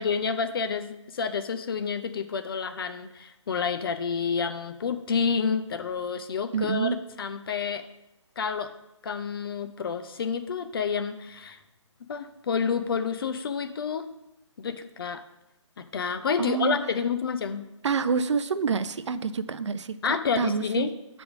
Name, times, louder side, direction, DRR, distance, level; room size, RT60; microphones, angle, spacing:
voice 1, 0.0-7.9 8.4-8.7 9.0-11.6 12.1-14.1 14.6-15.2 15.8-17.6 20.0-20.9, left 6 dB, 45° left, 8 dB, 0.6 m, -29 dB
voice 2, 6.5-7.0 16.4-16.8 17.8-20.9, right 5 dB, 65° right, 13 dB, 0.5 m, -27 dB
8.7 x 3.5 x 6.0 m, 0.90 s
hypercardioid pair, 155°, 16 cm